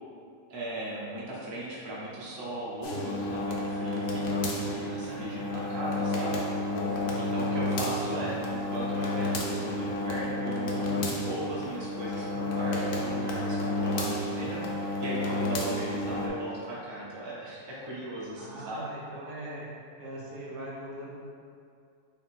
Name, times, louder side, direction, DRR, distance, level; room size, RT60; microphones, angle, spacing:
voice 1, 0.5-6.4 7.2-18.8, right 1 dB, 30° right, -6 dB, 0.5 m, -37 dB
sound 1, 2.8-16.3, left 1 dB, 70° left, 0.6 m, -31 dB
voice 2, 4.5-5.9 7.0-8.4 18.4-19.7 20.0-21.1, right 1 dB, 90° right, -4 dB, 1.4 m, -42 dB
3.5 x 2.9 x 4.2 m, 2.4 s
omnidirectional pair, 1.6 m